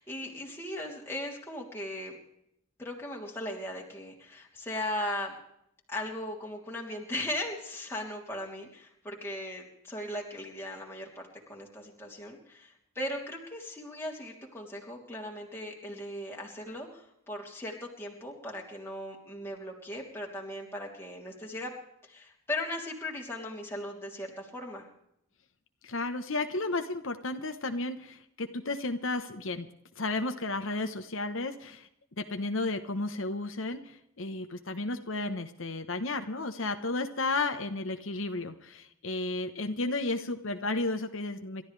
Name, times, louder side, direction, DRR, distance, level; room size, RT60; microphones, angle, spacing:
voice 1, 0.0-2.2 2.8-5.4 5.9-21.7 22.0-24.9, left 1 dB, 10° left, -1 dB, 3.2 m, -38 dB
voice 2, 25.8-29.7 30.0-31.9 32.2-41.6, left 2 dB, 70° left, 7 dB, 1.1 m, -33 dB
28.5 x 13.5 x 3.3 m, 0.76 s
head